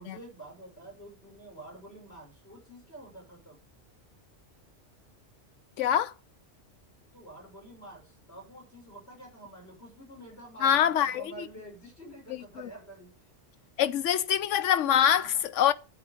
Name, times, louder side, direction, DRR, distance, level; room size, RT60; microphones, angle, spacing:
voice 1, 0.0-3.6 7.1-13.1 13.5-13.7 15.2-15.4, right 2 dB, 55° left, 6.6 m, -48 dB
voice 2, 5.8-6.1 10.6-11.2 13.8-15.7, left 10 dB, 80° left, 1.0 m, -24 dB
9.5 x 7.9 x 5.1 m
omnidirectional pair, 1.2 m